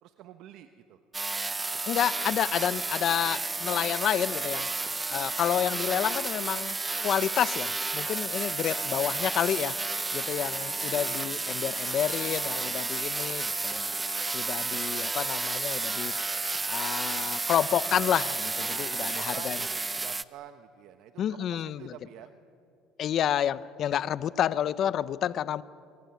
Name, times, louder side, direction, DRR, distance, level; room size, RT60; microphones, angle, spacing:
voice 1, 0.0-1.0 8.6-8.8 10.2-10.4 18.6-22.3, right 11 dB, 60° right, 8 dB, 1.1 m, -48 dB
sound 1, 1.1-20.2, right 3 dB, 15° right, 0.6 m, -32 dB
voice 2, 1.8-4.7 5.1-6.8 7.0-9.8 10.1-13.9 14.3-16.1 16.7-19.6 21.2-21.9 23.0-25.6, left 10 dB, 45° left, 17 dB, 0.8 m, -29 dB
Wind instrument woodwind instrument, 5.1-8.6 9.0-9.2 9.5-10.2 10.4-11.2 11.6-11.8 12.1-12.8, left 6 dB, 25° left, 2.7 m, -50 dB
26.0 x 23.5 x 9.5 m, 2.4 s
cardioid pair, 135°, 0 cm